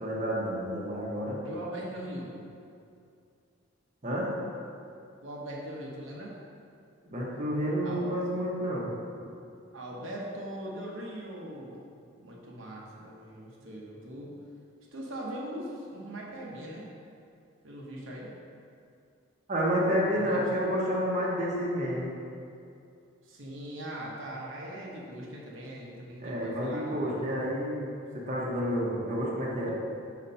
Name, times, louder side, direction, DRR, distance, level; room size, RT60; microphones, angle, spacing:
voice 1, 0.0-1.4 4.0-4.3 7.1-8.9 19.5-22.1 26.2-29.7, equal, 35° right, -5 dB, 0.9 m, -30 dB
voice 2, 1.4-2.3 5.2-6.4 7.8-8.1 9.7-11.8 12.2-14.3 14.9-16.9 17.6-18.3 20.1-20.7 23.2-27.2 29.6-29.7, right 1 dB, 70° right, -4 dB, 0.9 m, -40 dB
4.3 x 4.2 x 5.5 m, 2.5 s
head